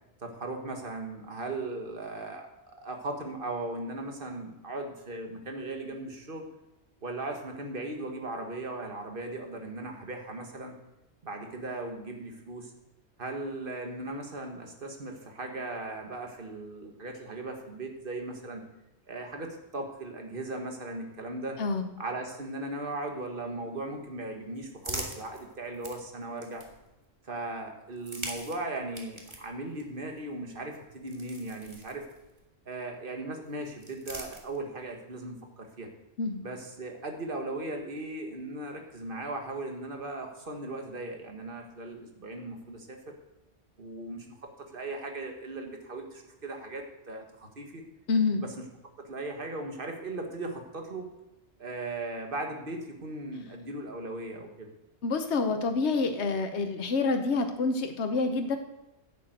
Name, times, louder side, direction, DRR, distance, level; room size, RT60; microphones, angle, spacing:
voice 1, 0.2-6.5 7.0-10.7 11.2-12.7 13.2-18.6 19.1-21.6 22.0-26.6 27.2-32.1 32.7-35.9 36.4-43.2 43.8-44.4 44.7-47.8 48.4-48.5 49.0-51.1 51.6-54.7, right 2 dB, 50° right, 3 dB, 1.9 m, -38 dB
sound 1, 24.1-27.0 27.9-32.5 33.4-34.9, right 1 dB, 25° right, 1.8 m, -44 dB
voice 2, 48.1-48.4 55.0-58.6, left 4 dB, 75° left, 5 dB, 1.3 m, -27 dB
10.5 x 7.5 x 8.1 m, 0.95 s
omnidirectional pair, 1.2 m